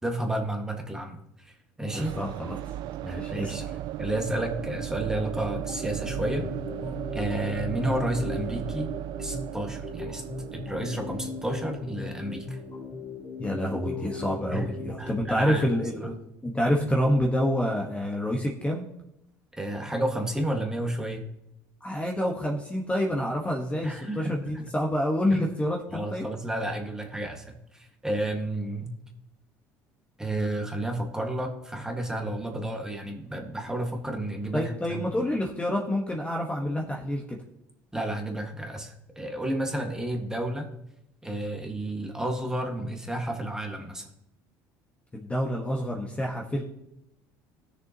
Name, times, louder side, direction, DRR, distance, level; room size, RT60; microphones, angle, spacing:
voice 1, 0.0-2.1 3.1-3.6 4.0-6.5 7.1-8.9 9.2-10.2 10.5-12.6 14.5-14.7 15.0-15.7 16.0-16.1 16.8-16.9 19.5-21.3 23.8-24.7 25.3-25.5 25.9-28.9 30.2-35.0 37.9-40.7 41.2-44.1, right 1 dB, 5° right, 2 dB, 1.8 m, -31 dB
voice 2, 1.8-2.6 3.0-3.5 13.4-16.1 16.4-18.8 21.8-26.2 34.5-37.4 45.1-46.6, equal, 15° left, 0 dB, 1.4 m, -28 dB
sound 1, 1.9-13.7, right 12 dB, 65° right, 0.4 m, -36 dB
sound 2, 5.1-16.1, left 4 dB, 30° left, 0.8 m, -39 dB
17.0 x 6.7 x 3.0 m, 0.81 s
supercardioid pair, 85°, 8 cm